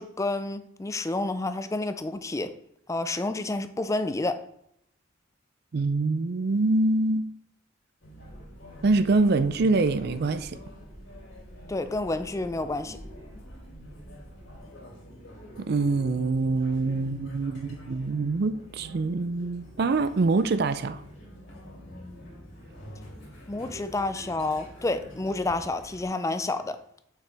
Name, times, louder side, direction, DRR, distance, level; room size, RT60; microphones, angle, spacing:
voice 1, 0.0-2.5 2.9-4.4 11.7-13.0 23.5-26.8, left 2 dB, 15° left, 0.4 m, -29 dB
voice 2, 5.7-7.3 8.8-10.6 15.7-21.0, right 3 dB, 55° right, 0.4 m, -25 dB
sound 1, 8.0-26.1, equal, 85° left, 3.1 m, -47 dB
sound 2, 8.2-14.6, equal, ahead, 2.8 m, -49 dB
Train, 21.5-26.8, left 2 dB, 60° left, 2.6 m, -50 dB
6.7 x 6.1 x 3.4 m
head